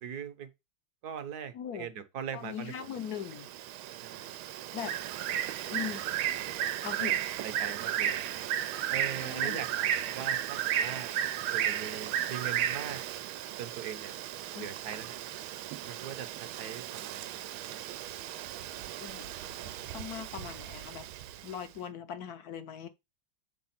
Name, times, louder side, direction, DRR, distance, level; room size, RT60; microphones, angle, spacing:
voice 1, 0.0-0.5 1.0-2.9 4.0-4.4 7.0-7.1 7.4-8.3 8.9-11.2 11.5-13.0 13.6-14.1 14.6-15.2 15.9-17.8, right 8 dB, 60° right, 1.3 m, -41 dB
voice 2, 1.5-1.9 2.3-3.5 4.7-4.9 5.7-6.0 6.8-7.2 9.2-9.6 14.5-14.7 19.0-19.3 19.6-21.1 21.4-22.9, left 8 dB, 60° left, 1.1 m, -40 dB
Bird, 2.8-21.5, right 11 dB, 90° right, 1.4 m, -34 dB
7.6 x 3.4 x 5.8 m
omnidirectional pair, 2.2 m